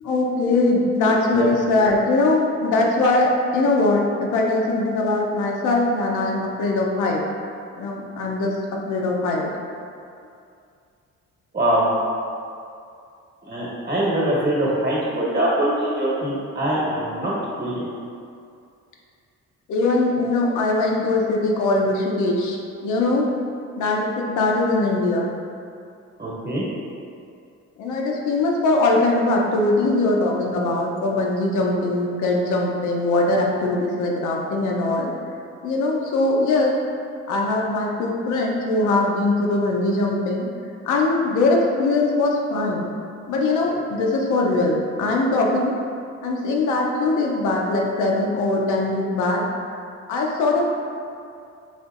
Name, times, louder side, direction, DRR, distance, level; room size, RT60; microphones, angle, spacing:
voice 1, 0.0-7.2 7.8-9.5 19.7-23.3 23.8-25.3 27.8-35.1 35.6-36.8 37.3-40.5 40.9-42.9 43.3-45.7 46.2-49.4 50.1-50.7, left 2 dB, 80° left, -1 dB, 0.6 m, -21 dB
voice 2, 11.5-11.9 13.5-17.8 26.2-26.6, right 1 dB, 35° right, -6 dB, 1.2 m, -23 dB
4.2 x 2.9 x 2.4 m, 2.4 s
cardioid pair, 90°, 30 cm